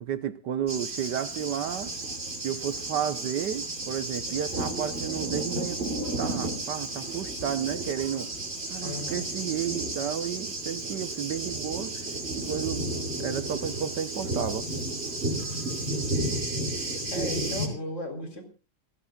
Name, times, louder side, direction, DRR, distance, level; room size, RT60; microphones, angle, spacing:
voice 1, 0.0-1.9 2.4-5.8 6.2-8.3 8.7-12.0 12.3-12.8 13.2-14.7, right 9 dB, 75° right, 12 dB, 1.6 m, -32 dB
Thunder, 0.7-17.7, right 2 dB, 35° right, 3.3 m, -32 dB
voice 2, 8.8-9.3 17.1-18.4, left 1 dB, 45° left, 6 dB, 4.3 m, -35 dB
28.5 x 14.0 x 2.4 m, 0.32 s
omnidirectional pair, 1.9 m